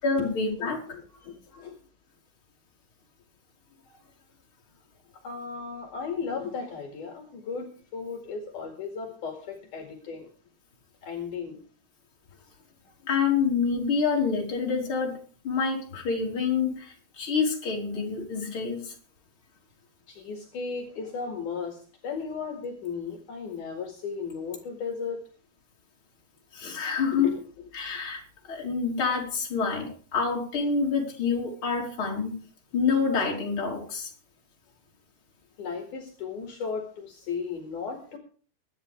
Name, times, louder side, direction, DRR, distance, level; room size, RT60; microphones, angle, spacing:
voice 1, 0.0-0.8 13.1-15.2 15.4-18.9 26.5-27.3 27.7-32.4 32.7-34.1, left 5 dB, 35° left, -1 dB, 4.3 m, -27 dB
voice 2, 0.6-1.8 5.2-10.3 11.0-11.6 20.1-25.2 27.1-27.7 35.6-38.2, left 5 dB, 60° left, 3 dB, 3.5 m, -35 dB
23.5 x 10.5 x 3.5 m, 0.42 s
omnidirectional pair, 4.2 m